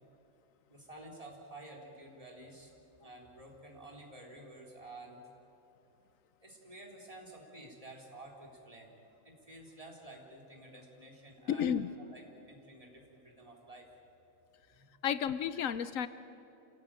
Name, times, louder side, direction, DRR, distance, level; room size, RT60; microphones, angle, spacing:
voice 1, 0.7-2.7 3.0-5.2 6.4-8.9 9.2-11.7 12.0-13.9 14.7-14.8, right 1 dB, 25° right, -1 dB, 3.7 m, -51 dB
voice 2, 11.5-11.9 15.0-16.1, left 8 dB, 80° left, 13 dB, 1.1 m, -32 dB
27.0 x 17.0 x 8.9 m, 3.0 s
omnidirectional pair, 1.4 m